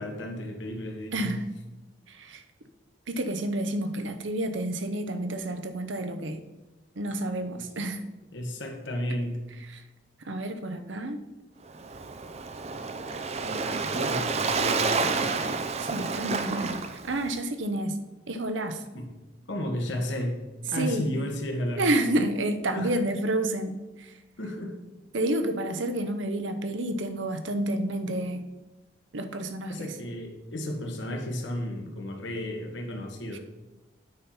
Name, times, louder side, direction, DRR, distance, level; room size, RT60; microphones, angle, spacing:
voice 1, 0.0-1.4 8.3-9.4 13.4-15.5 18.9-19.0 19.5-20.4 20.7-21.9 22.7-22.9 24.4-24.7 29.7-33.4, left 1 dB, 70° left, 2 dB, 1.4 m, -33 dB
voice 2, 1.1-1.4 2.1-2.4 3.1-6.4 7.0-8.0 9.7-9.8 10.2-11.2 15.8-18.0 18.3-18.8 20.7-21.1 21.8-24.1 25.1-28.4 29.1-29.9 33.3-33.4, right 1 dB, 70° right, 8 dB, 0.8 m, -29 dB
Waves surf, 11.7-17.4, right 4 dB, 35° right, 0.5 m, -29 dB
8.9 x 4.3 x 5.7 m, 1.1 s
head